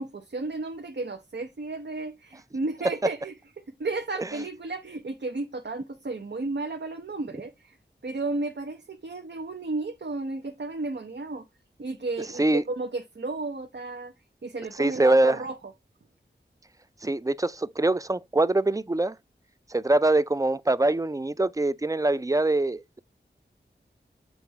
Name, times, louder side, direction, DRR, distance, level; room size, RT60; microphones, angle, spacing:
voice 1, 0.0-3.3 3.8-7.8 8.0-11.4 11.8-14.1 14.4-15.7, right 3 dB, 70° right, 0.7 m, -33 dB
voice 2, 14.8-15.4 17.0-19.1 19.7-23.0, right 2 dB, 20° right, 0.4 m, -23 dB
7.8 x 3.0 x 4.6 m
wide cardioid pair, 45°, 19 cm